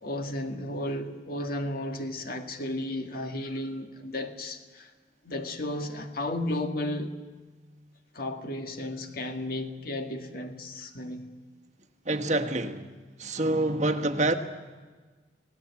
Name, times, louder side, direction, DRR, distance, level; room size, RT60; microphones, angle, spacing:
voice 1, 0.0-4.9 5.2-7.2 8.1-11.3, left 1 dB, 55° left, 1.9 m, -34 dB
voice 2, 12.0-12.9 13.2-14.4, right 2 dB, 40° right, 1.5 m, -26 dB
28.0 x 18.0 x 8.4 m
head